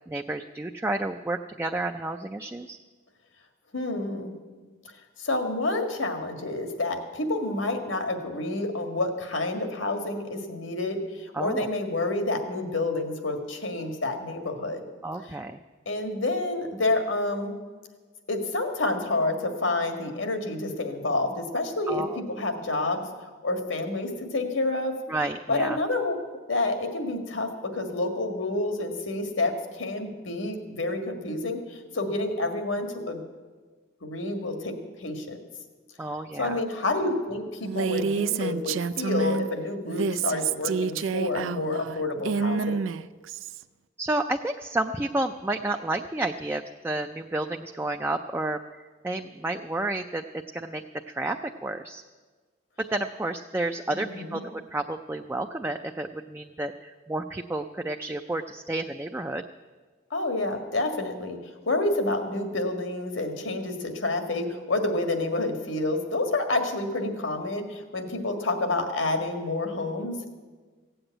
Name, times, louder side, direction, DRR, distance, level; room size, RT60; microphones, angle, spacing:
voice 1, 0.1-2.8 11.3-11.7 15.0-15.6 21.9-22.2 25.1-25.8 36.0-36.6 44.0-52.0 52.8-59.4, right 2 dB, 10° right, 5 dB, 0.3 m, -31 dB
voice 2, 3.7-4.3 5.2-14.8 15.9-17.6 18.3-23.1 23.4-25.0 25.5-26.1 26.5-33.2 34.0-35.4 36.3-42.8 53.9-54.4 60.1-70.3, left 2 dB, 85° left, 6 dB, 1.8 m, -29 dB
Female speech woman speaking, 37.6-39.5 39.8-43.6, right 6 dB, 85° right, 0.4 m, -28 dB
16.0 x 7.9 x 9.0 m, 1.4 s
head